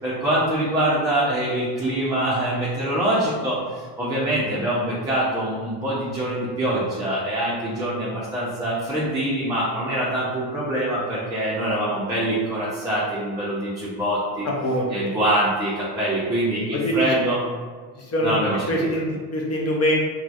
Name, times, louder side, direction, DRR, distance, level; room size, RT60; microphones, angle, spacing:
voice 1, 0.0-14.5 14.9-17.4 18.2-18.9, right 1 dB, 10° right, -9 dB, 0.7 m, -24 dB
voice 2, 14.4-14.9 16.7-16.9 18.0-18.3 18.7-19.9, equal, 30° left, -2 dB, 0.7 m, -24 dB
3.0 x 2.4 x 2.6 m, 1.5 s
supercardioid pair, 85°, 50 cm